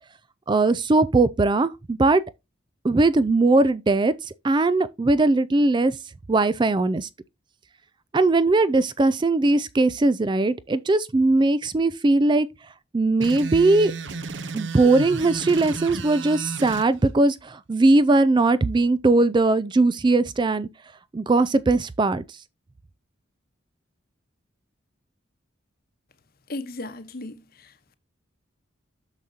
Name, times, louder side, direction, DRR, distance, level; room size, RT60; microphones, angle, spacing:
voice 1, 0.5-2.2 2.8-4.1 4.4-5.9 6.3-7.1 8.1-12.5 12.9-13.9 14.5-20.7 21.1-22.2, right 2 dB, 25° right, 0.3 m, -20 dB
sound 1, 13.2-16.9, right 4 dB, 65° right, 0.9 m, -33 dB
voice 2, 26.5-27.9, left 2 dB, 50° left, 1.0 m, -36 dB
8.8 x 6.4 x 2.8 m
head